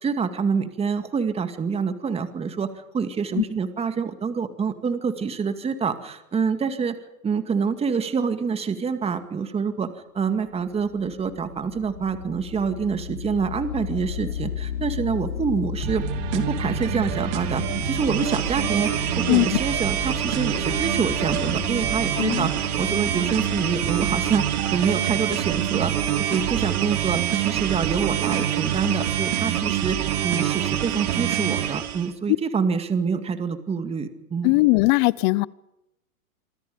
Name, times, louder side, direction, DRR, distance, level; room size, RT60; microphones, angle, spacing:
voice 1, 0.0-7.0 7.2-9.9 10.1-16.0 16.3-25.9 26.2-34.6, right 5 dB, 15° right, 2.2 m, -26 dB
sound 1, 10.5-27.9, left 8 dB, 90° left, 3.8 m, -34 dB
sound 2, 15.8-31.8, right 13 dB, 55° right, 3.7 m, -29 dB
sound 3, 17.3-32.1, right 10 dB, 75° right, 4.2 m, -28 dB
voice 2, 22.2-22.5 34.4-35.5, left 24 dB, 35° left, 0.8 m, -19 dB
27.0 x 25.0 x 5.3 m
hypercardioid pair, 135°, 43 cm